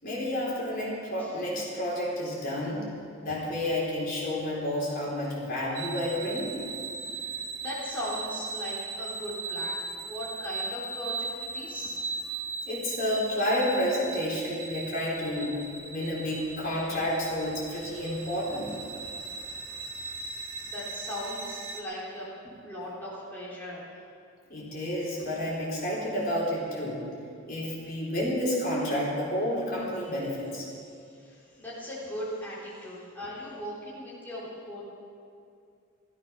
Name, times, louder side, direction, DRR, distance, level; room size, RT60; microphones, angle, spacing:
voice 1, 0.0-2.8 3.2-6.5 12.6-15.5 15.9-18.7 24.5-27.1 27.5-30.7, left 1 dB, 45° left, -5 dB, 4.4 m, -30 dB
sound 1, 5.7-21.8, right 4 dB, 85° right, 1.7 m, -38 dB
voice 2, 7.6-11.3 11.5-12.0 20.6-22.3 22.6-24.0 31.0-34.8, equal, 10° left, -8 dB, 3.5 m, -38 dB
15.5 x 14.0 x 6.0 m, 2.4 s
head